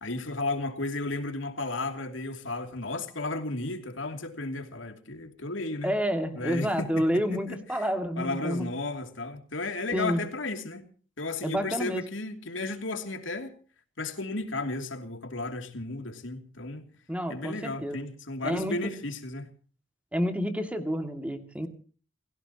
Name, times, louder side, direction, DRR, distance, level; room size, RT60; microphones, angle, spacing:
voice 1, 0.0-5.9 6.4-7.8 8.2-10.9 11.2-13.5 14.0-16.8 17.3-19.5, left 2 dB, 80° left, 2.9 m, -34 dB
voice 2, 5.8-8.7 9.9-10.2 11.4-12.0 17.1-18.0 18.4-18.8 20.1-21.7, equal, 5° right, 2.4 m, -29 dB
29.5 x 16.5 x 3.0 m
head